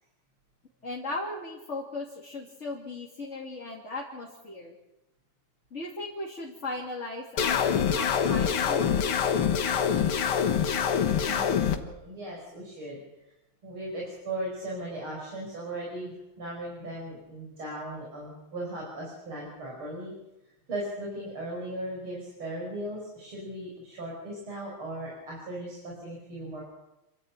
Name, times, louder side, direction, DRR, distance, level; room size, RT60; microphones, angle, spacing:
voice 1, 0.8-4.8 5.7-9.0, left 2 dB, 35° left, -2 dB, 2.7 m, -37 dB
sound 1, 7.4-11.8, left 7 dB, 85° left, 2.2 m, -25 dB
voice 2, 11.2-13.0 13.6-20.1 20.7-26.6, right 1 dB, 90° right, -3 dB, 6.7 m, -37 dB
27.0 x 13.0 x 8.9 m, 0.96 s
omnidirectional pair, 2.3 m